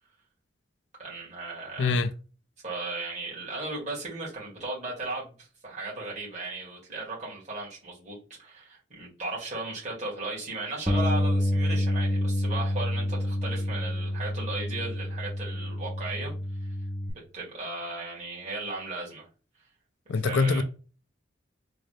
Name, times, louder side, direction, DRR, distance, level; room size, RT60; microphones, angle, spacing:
voice 1, 1.0-2.1 2.6-16.3 17.1-19.3 20.1-20.6, right 2 dB, 40° right, 2.1 m, -36 dB
voice 2, 1.8-2.1 20.1-20.6, left 4 dB, 75° left, 0.4 m, -24 dB
Bass guitar, 10.9-17.1, left 1 dB, ahead, 0.5 m, -28 dB
3.8 x 2.6 x 3.2 m
head